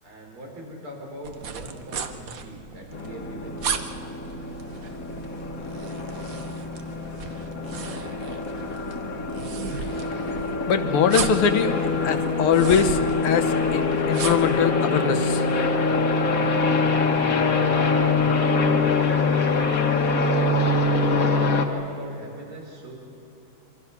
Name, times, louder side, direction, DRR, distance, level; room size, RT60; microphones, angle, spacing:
voice 1, 0.0-3.8 18.6-19.8 20.6-22.9, equal, 80° right, -1 dB, 5.5 m, -41 dB
sound 1, 1.2-14.6, right 6 dB, 50° right, 1.2 m, -36 dB
sound 2, 2.9-21.6, left 3 dB, 45° left, 1.7 m, -24 dB
voice 2, 10.7-11.8 12.0-15.5, left 7 dB, 85° left, 7 dB, 2.1 m, -22 dB
27.0 x 25.0 x 6.0 m, 2.9 s
omnidirectional pair, 2.3 m